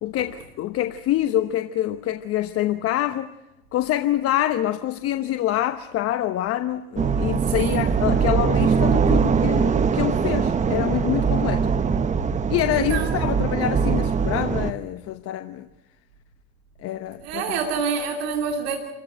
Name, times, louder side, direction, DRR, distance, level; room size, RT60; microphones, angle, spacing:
voice 1, 0.0-3.3 3.7-11.7 12.5-15.7 16.8-17.6, left 13 dB, 45° left, 1.0 m, -26 dB
sound 1, 7.0-14.7, right 6 dB, 20° right, 1.1 m, -22 dB
voice 2, 7.5-7.9 12.7-13.2 16.9-18.8, right 6 dB, 75° right, 2.9 m, -28 dB
27.0 x 15.5 x 9.0 m
hypercardioid pair, 100°, 32 cm